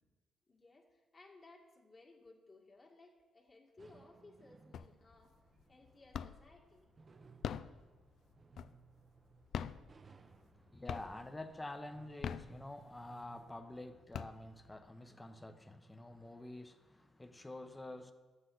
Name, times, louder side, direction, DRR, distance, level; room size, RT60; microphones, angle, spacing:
voice 1, 0.5-5.4 5.7-6.9, left 2 dB, 35° left, 0 dB, 1.9 m, -61 dB
sound 1, 3.8-13.7, right 5 dB, 35° right, 0.6 m, -63 dB
sound 2, 4.7-5.2 5.6-6.6 7.2-9.0 9.4-10.6 10.9-11.4 12.0-13.1 13.6-13.7 13.9-14.8, left 8 dB, 70° left, 0.3 m, -43 dB
voice 2, 10.2-18.1, left 1 dB, 15° left, 8 dB, 0.8 m, -48 dB
12.5 x 8.0 x 3.9 m, 1.3 s
cardioid pair, 90°, 0 cm